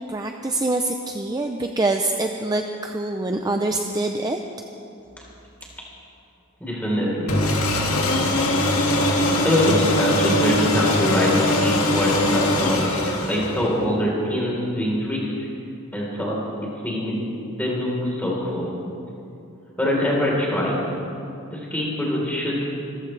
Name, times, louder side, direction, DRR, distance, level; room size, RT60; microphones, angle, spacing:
voice 1, 0.1-4.4, right 2 dB, 20° right, 4 dB, 0.5 m, -25 dB
voice 2, 6.6-7.3 9.4-15.3 15.9-16.4 16.8-17.2 17.5-18.7 19.8-20.8 21.5-22.7, left 1 dB, 5° left, -4 dB, 3.8 m, -23 dB
sound 1, 7.3-13.8, left 1 dB, 85° left, 2.1 m, -21 dB
26.0 x 14.5 x 3.3 m, 2.7 s
head